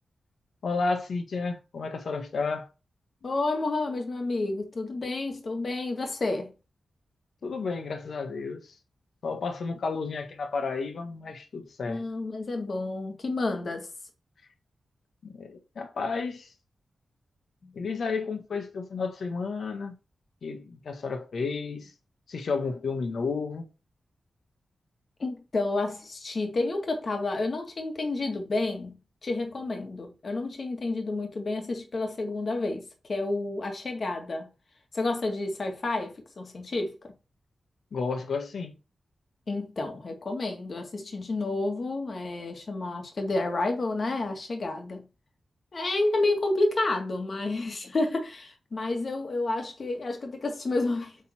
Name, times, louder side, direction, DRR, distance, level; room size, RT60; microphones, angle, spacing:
voice 1, 0.6-2.7 7.4-8.7 9.2-12.0 15.2-16.5 17.7-19.9 20.4-21.9 22.3-23.7 37.9-38.7, left 4 dB, 70° left, 1.5 m, -32 dB
voice 2, 3.2-6.5 11.9-13.9 17.6-17.7 25.2-28.9 29.2-34.5 34.9-37.1 39.5-45.0 45.7-51.2, left 2 dB, 45° left, 2.0 m, -30 dB
8.6 x 4.1 x 4.4 m
wide cardioid pair, 140°, 0 cm